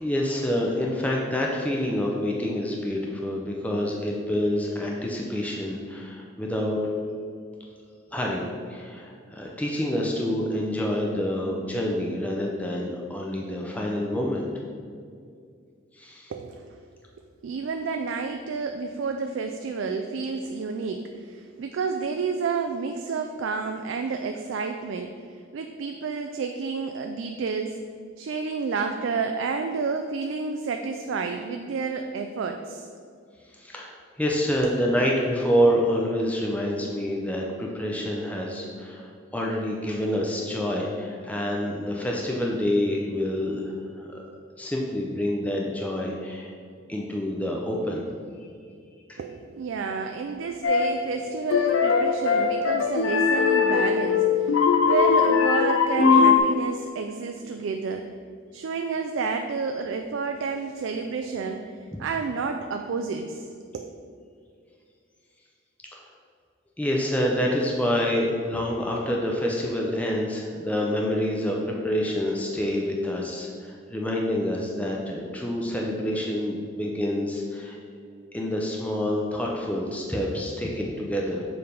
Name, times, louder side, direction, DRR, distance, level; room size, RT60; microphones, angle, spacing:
voice 1, 0.0-6.8 8.1-14.5 16.0-16.3 33.5-44.2 44.6-46.5 46.9-48.1 49.1-49.2 61.9-62.0 66.8-77.8 78.3-81.4, equal, 5° left, -2 dB, 0.5 m, -27 dB
voice 2, 16.3-16.7 17.4-27.8 28.2-32.8 34.6-34.7 49.2-58.1 58.5-61.7 62.0-63.5 63.7-63.9, right 5 dB, 70° right, 5 dB, 0.3 m, -30 dB
sound 1, 50.6-51.0 51.5-56.4, left 5 dB, 75° left, 0.5 m, -20 dB
6.8 x 3.3 x 5.2 m, 2.2 s
head